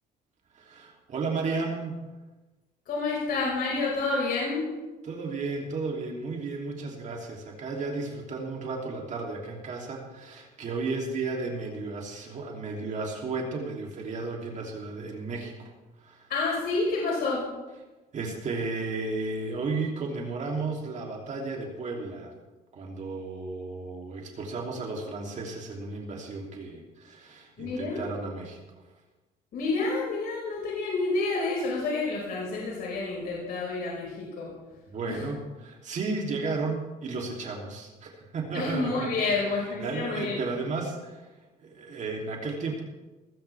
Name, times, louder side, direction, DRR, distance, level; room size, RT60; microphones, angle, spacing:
voice 1, 0.5-2.0 5.0-15.7 16.0-16.3 18.1-22.3 22.7-28.6 34.9-41.3 41.6-42.8, right 3 dB, 45° right, 0 dB, 3.1 m, -34 dB
voice 2, 2.9-4.6 16.3-17.4 27.6-28.1 29.5-34.5 35.1-35.3 38.5-40.4, left 3 dB, 60° left, -4 dB, 5.3 m, -29 dB
20.0 x 15.5 x 3.5 m, 1.2 s
cardioid pair, 110°, 17 cm